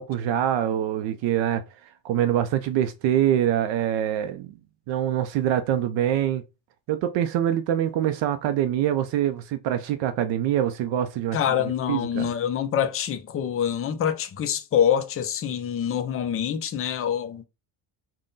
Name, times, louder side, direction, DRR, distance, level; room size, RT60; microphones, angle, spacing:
voice 1, 0.0-1.6 2.0-4.5 4.9-6.4 6.9-12.3, right 11 dB, 65° right, 0.5 m, -24 dB
voice 2, 11.3-17.4, left 9 dB, 30° left, 0.4 m, -25 dB
3.7 x 2.2 x 3.8 m
cardioid pair, 130°, 48 cm